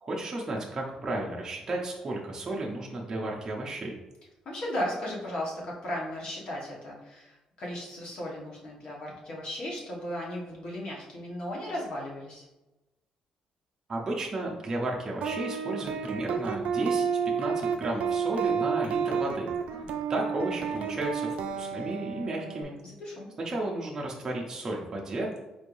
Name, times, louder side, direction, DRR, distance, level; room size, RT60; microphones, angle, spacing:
voice 1, 0.0-4.0 13.9-17.1 17.4-19.5 20.1-22.8 23.4-25.4, right 2 dB, 25° right, -2 dB, 0.5 m, -33 dB
voice 2, 4.4-12.4 19.7-19.9 22.8-23.3, left 1 dB, 45° left, -3 dB, 1.2 m, -36 dB
sound 1, 15.2-22.6, right 6 dB, 85° right, 0.3 m, -30 dB
4.4 x 3.2 x 2.6 m, 1.0 s
cardioid pair, 165°, 2 cm